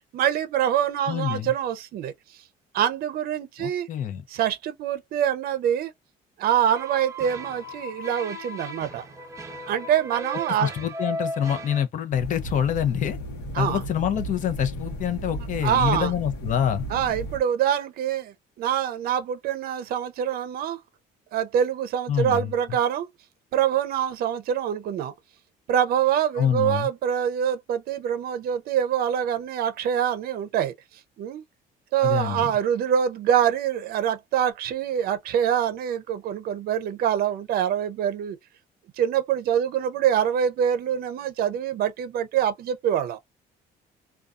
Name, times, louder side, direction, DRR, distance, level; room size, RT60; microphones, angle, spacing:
voice 1, 0.1-2.1 2.7-3.9 4.3-5.9 6.4-9.0 9.7-10.7 13.5-13.8 15.6-16.1 16.9-20.8 21.3-23.1 23.5-25.1 25.7-30.7 31.2-31.4 31.9-38.4 39.0-43.2, right 9 dB, 65° right, 0.5 m, -25 dB
voice 2, 1.1-1.5 3.6-4.2 10.6-13.2 13.6-16.9 22.1-22.5 26.3-26.9 32.0-32.5, left 9 dB, 50° left, 0.6 m, -26 dB
sound 1, 6.7-11.8, right 1 dB, 20° right, 0.7 m, -36 dB
sound 2, 12.1-17.4, right 1 dB, 85° left, 0.9 m, -35 dB
2.4 x 2.3 x 2.4 m
cardioid pair, 110°, 17 cm